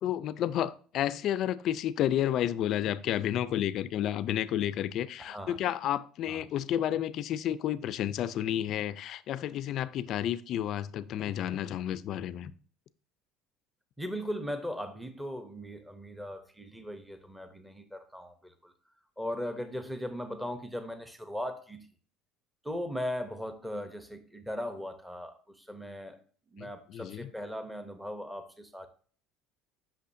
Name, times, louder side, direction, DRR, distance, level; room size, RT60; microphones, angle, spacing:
voice 1, 0.0-12.5 26.6-27.3, left 11 dB, 45° left, 0.4 m, -31 dB
voice 2, 5.2-5.6 6.2-6.4 14.0-18.7 19.2-21.9 22.6-26.2 26.5-28.9, equal, 5° right, 0.7 m, -38 dB
8.3 x 6.1 x 2.6 m
cardioid pair, 160°, 0 cm